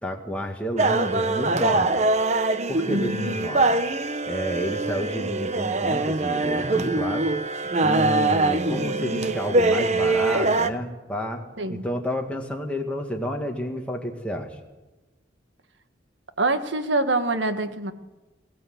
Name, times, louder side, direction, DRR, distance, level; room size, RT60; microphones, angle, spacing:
voice 1, 0.0-2.0 2.7-3.7 4.3-7.3 7.8-11.4 11.7-14.6, equal, 5° left, 1 dB, 2.1 m, -30 dB
sound 1, 0.8-10.7, right 2 dB, 35° right, 0.9 m, -23 dB
voice 2, 2.9-3.3 3.6-3.8 11.6-11.8 16.4-17.9, right 2 dB, 75° right, 9 dB, 1.6 m, -25 dB
22.0 x 15.5 x 8.0 m, 1.2 s
head